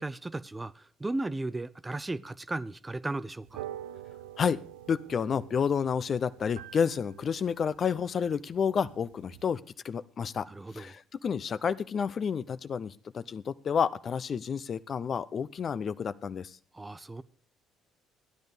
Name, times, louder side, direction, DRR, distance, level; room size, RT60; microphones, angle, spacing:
voice 1, 0.0-3.6 10.5-10.9 16.7-17.2, right 2 dB, 15° right, 0.7 m, -36 dB
sound 1, 3.4-9.4, right 12 dB, 75° right, 0.5 m, -47 dB
voice 2, 4.9-10.5 10.7-16.5, left 7 dB, 45° left, 0.6 m, -30 dB
15.0 x 10.5 x 5.1 m
figure-of-eight pair, 50°, 0 cm